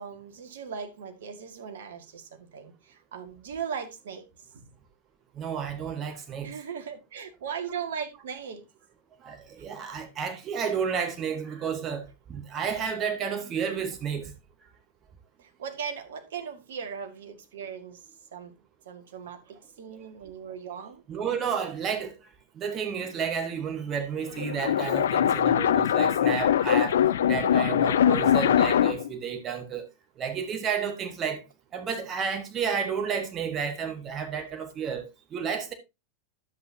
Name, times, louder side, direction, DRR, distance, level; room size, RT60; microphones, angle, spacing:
voice 1, 0.0-4.7 6.4-8.6 9.6-9.7 15.4-18.6 18.9-21.0, right 7 dB, 60° right, 1.9 m, -38 dB
voice 2, 5.3-6.5 9.2-14.3 21.1-22.1 22.5-27.0 27.3-29.9 30.2-31.4 31.7-35.0 35.3-35.7, right 6 dB, 30° right, 1.6 m, -31 dB
sound 1, 24.2-29.1, left 10 dB, 60° left, 0.4 m, -22 dB
10.5 x 8.2 x 2.8 m
figure-of-eight pair, 90°, 0 cm